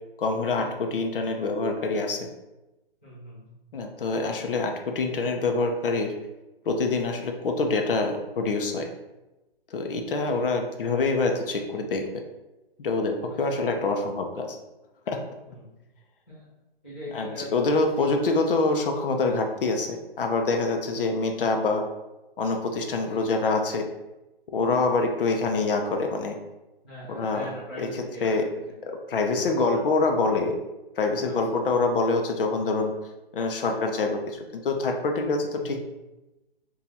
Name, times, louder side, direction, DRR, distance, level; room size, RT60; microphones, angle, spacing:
voice 1, 0.2-2.3 3.7-6.1 6.6-8.9 9.7-12.1 12.8-14.6 15.1-15.2 17.1-21.8 22.4-23.9 24.5-26.4 27.1-27.5 27.8-28.5 28.8-30.6 30.9-32.9 33.3-35.8, left 3 dB, 60° left, 4 dB, 0.6 m, -25 dB
voice 2, 3.0-3.5 10.3-10.4 13.3-13.7 15.4-15.7 16.3-16.5 16.8-18.1 23.1-23.3 25.0-25.1 26.8-28.8 29.3-29.8 31.3-31.6 35.5-35.8, equal, 10° left, -13 dB, 0.4 m, -41 dB
2.7 x 2.3 x 4.1 m, 1.0 s
hypercardioid pair, 160°, 30 cm